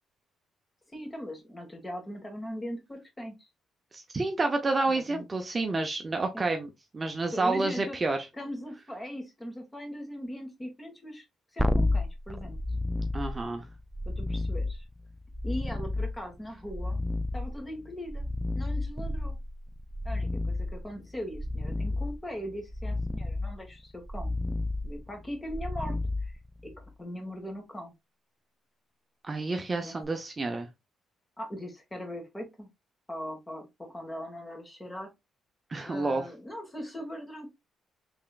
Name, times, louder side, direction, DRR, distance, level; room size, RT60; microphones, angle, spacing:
voice 1, 0.9-3.5 4.9-5.2 6.3-6.5 7.3-8.0 8.3-11.2 11.5-12.6 14.1-14.9 15.4-17.1 17.3-18.3 18.5-19.4 20.1-24.3 24.8-26.3 26.6-28.0 29.8-30.0 31.4-32.7 33.1-35.1 35.8-37.5, equal, 15° left, 1.6 m, -40 dB
voice 2, 3.9-8.2 13.1-13.6 29.2-30.7 35.7-36.2, right 3 dB, 30° right, 0.7 m, -29 dB
sound 1, 11.6-26.9 30.0-30.1, left 2 dB, 5° right, 0.3 m, -32 dB
3.6 x 3.4 x 2.4 m
cardioid pair, 90°, 0 cm